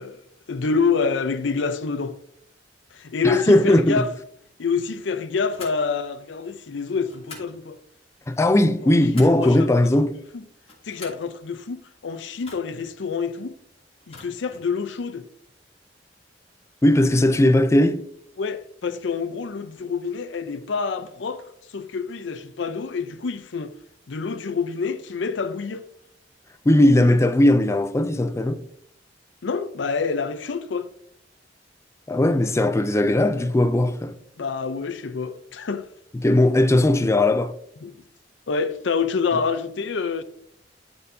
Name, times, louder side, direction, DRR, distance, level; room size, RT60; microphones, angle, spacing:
voice 1, 0.0-2.2 2.9-4.1 4.6-7.8 8.8-9.7 10.3-10.4 10.8-13.6 14.1-15.3 18.4-23.7 24.1-25.8 29.4-30.9 34.4-35.9 37.8-38.0 38.5-40.2, left 5 dB, 75° left, 0.5 m, -27 dB
voice 2, 3.2-4.1 8.3-10.2 16.8-18.0 26.7-28.6 32.1-34.1 36.2-37.5, left 1 dB, 15° left, 0.4 m, -18 dB
sound 1, 5.5-5.8 7.1-7.6 8.6-9.5 10.5-11.3 12.4-12.9 14.0-14.7, left 3 dB, 35° left, 2.7 m, -44 dB
12.0 x 4.3 x 2.7 m
head